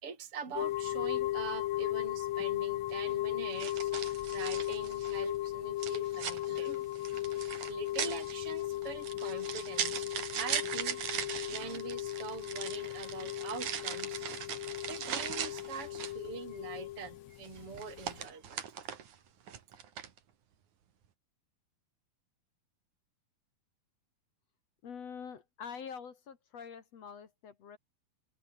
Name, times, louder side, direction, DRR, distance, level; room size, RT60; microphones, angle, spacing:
voice 1, 0.0-6.9 7.3-10.1 10.4-11.0 11.5-14.3 14.9-18.6, right 6 dB, 35° right, 5.3 m, -44 dB
sound 1, 0.5-18.3, left 15 dB, 90° left, 1.5 m, -37 dB
sound 2, 2.3-2.5 3.6-5.3 5.8-16.3 17.4-19.2 19.5-20.2, right 8 dB, 55° right, 3.5 m, -39 dB
voice 2, 24.8-27.8, left 7 dB, 50° left, 2.8 m, -45 dB
omnidirectional pair, 4.3 m